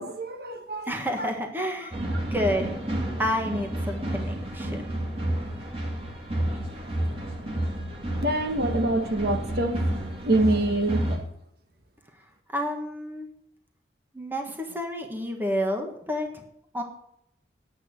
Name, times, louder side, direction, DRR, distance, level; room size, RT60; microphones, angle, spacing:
voice 1, 0.0-0.9 1.2-1.3 2.1-2.2 8.2-9.8 10.2-11.3, right 2 dB, 60° right, 1.4 m, -26 dB
voice 2, 0.9-2.7 3.2-4.9 12.5-13.3 14.1-16.4 16.7-16.8, equal, 10° right, 1.5 m, -30 dB
sound 1, 1.9-11.2, right 1 dB, 30° right, 2.3 m, -30 dB
9.9 x 8.9 x 6.6 m
head